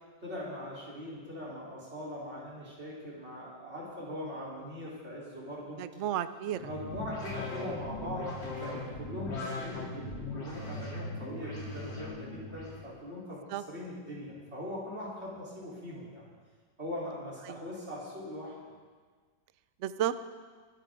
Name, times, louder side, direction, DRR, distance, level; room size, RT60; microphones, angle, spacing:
voice 1, 0.2-5.8 6.6-8.3 8.6-16.2 16.8-18.5, left 1 dB, 35° right, -6 dB, 4.5 m, -41 dB
voice 2, 5.8-6.6 13.5-13.6 17.5-17.6 19.8-20.1, right 11 dB, 80° right, 13 dB, 0.6 m, -32 dB
sound 1, 6.5-12.8, left 2 dB, 70° left, 4.3 m, -39 dB
21.5 x 12.5 x 3.9 m, 1.5 s
omnidirectional pair, 2.0 m